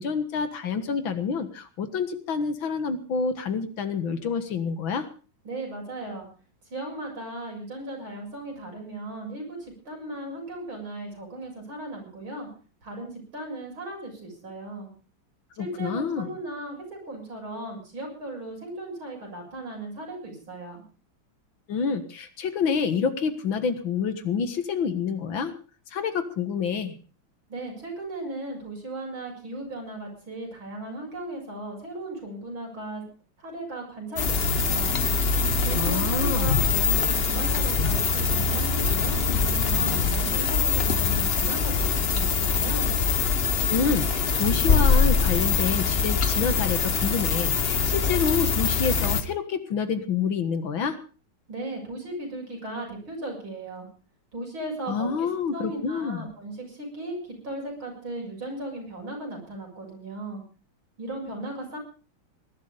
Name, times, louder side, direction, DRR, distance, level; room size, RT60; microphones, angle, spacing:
voice 1, 0.0-5.1 15.6-16.3 21.7-25.5 25.9-27.0 35.7-36.6 43.7-51.0 54.9-56.3, left 6 dB, 70° left, 10 dB, 2.3 m, -28 dB
voice 2, 5.4-6.3 6.7-12.5 12.8-14.9 15.6-20.8 27.5-33.0 33.4-35.0 35.6-42.9 51.5-53.9 54.3-60.4 61.0-61.8, right 2 dB, 75° right, 0 dB, 7.8 m, -36 dB
sound 1, 34.2-49.2, left 5 dB, 35° left, 1.2 m, -23 dB
19.5 x 12.0 x 5.2 m, 0.37 s
omnidirectional pair, 2.2 m